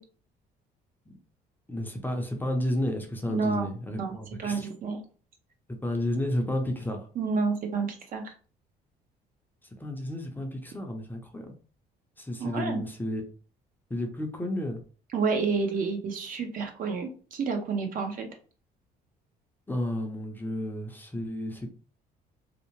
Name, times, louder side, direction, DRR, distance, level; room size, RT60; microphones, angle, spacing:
voice 1, 1.7-4.7 5.8-7.1 9.8-11.5 12.2-13.3 13.9-14.8 19.7-21.7, left 1 dB, 10° left, 3 dB, 0.5 m, -32 dB
voice 2, 3.3-4.1 4.4-5.0 7.2-8.3 12.4-12.8 15.1-18.3, right 4 dB, 55° right, 4 dB, 0.7 m, -29 dB
2.7 x 2.0 x 3.0 m, 0.39 s
cardioid pair, 110°, 17 cm